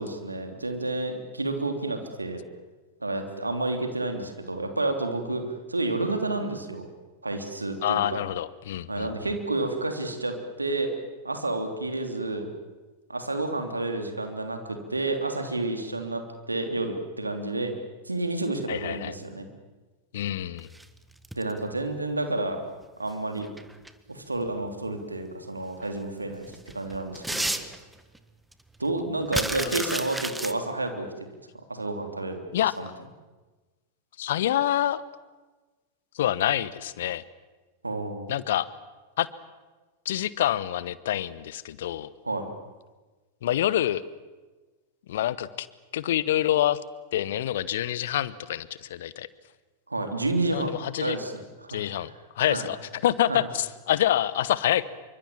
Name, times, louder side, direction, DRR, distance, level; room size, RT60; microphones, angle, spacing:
voice 1, 0.0-2.4 3.0-5.4 5.7-6.9 7.2-8.2 8.9-10.9 11.2-12.5 13.1-17.7 18.0-19.5 21.3-22.6 23.0-23.5 24.1-27.5 28.8-31.3 31.7-32.4 32.8-32.9 37.8-38.3 42.2-42.5 49.9-52.0 52.4-52.7 53.3-53.4, right 2 dB, 80° right, 5 dB, 3.2 m, -30 dB
voice 2, 7.8-9.1 18.7-19.1 20.1-20.7 29.6-30.0 32.5-32.7 34.2-35.0 36.1-37.2 38.3-38.7 39.2-39.3 40.0-42.1 43.4-44.0 45.1-45.7 45.9-46.8 47.1-49.3 50.5-51.2 51.7-52.8 53.0-54.8, left 12 dB, 55° left, 18 dB, 1.1 m, -26 dB
sound 1, 20.6-21.6 23.2-23.9 24.5-24.6 25.8-25.9 26.3-28.2 28.5-28.6 28.8-30.5, right 1 dB, 5° right, 1.6 m, -32 dB
27.5 x 24.5 x 7.4 m, 1.2 s
figure-of-eight pair, 90°, 0 cm